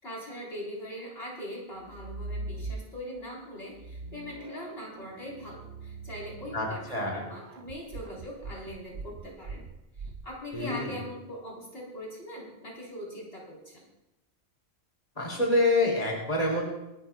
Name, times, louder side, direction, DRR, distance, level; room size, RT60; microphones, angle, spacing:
voice 1, 0.0-9.6 10.0-13.8, equal, 75° left, -4 dB, 4.7 m, -41 dB
sound 1, 1.8-3.2 3.7-10.7, right 3 dB, 85° right, 1.1 m, -42 dB
voice 2, 6.5-7.2 10.5-10.9 15.2-16.7, left 2 dB, 40° left, -3 dB, 3.1 m, -26 dB
26.5 x 12.5 x 2.4 m, 0.90 s
omnidirectional pair, 1.0 m